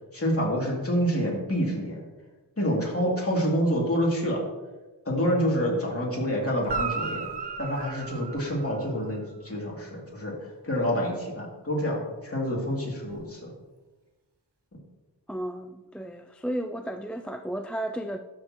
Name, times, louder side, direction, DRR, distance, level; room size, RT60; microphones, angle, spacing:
voice 1, 0.1-2.0 2.6-4.4 5.0-7.3 7.6-13.5, equal, 30° left, -3 dB, 2.7 m, -27 dB
Guitar, 6.6-9.2 13.1-13.2, right 5 dB, 65° right, 1.0 m, -34 dB
voice 2, 15.3-18.2, right 1 dB, 5° left, 7 dB, 0.3 m, -33 dB
12.5 x 6.6 x 3.0 m, 1.2 s
wide cardioid pair, 80°, 44 cm